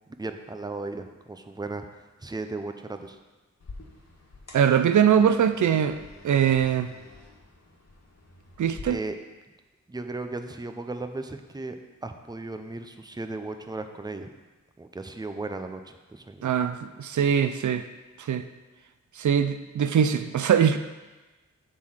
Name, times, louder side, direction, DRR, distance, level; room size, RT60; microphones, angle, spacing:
voice 1, 0.2-3.2 8.9-9.2 9.9-11.8 12.0-14.3 14.8-16.5, right 3 dB, 15° right, 7 dB, 0.6 m, -36 dB
sound 1, 3.6-8.8, left 3 dB, 60° left, 1.5 m, -48 dB
voice 2, 4.5-6.0 6.2-6.9 8.6-9.0 16.4-17.9 18.2-18.5 19.2-20.8, right 8 dB, 75° right, 10 dB, 0.4 m, -22 dB
8.2 x 3.8 x 6.4 m, 1.2 s
wide cardioid pair, 70°, 30 cm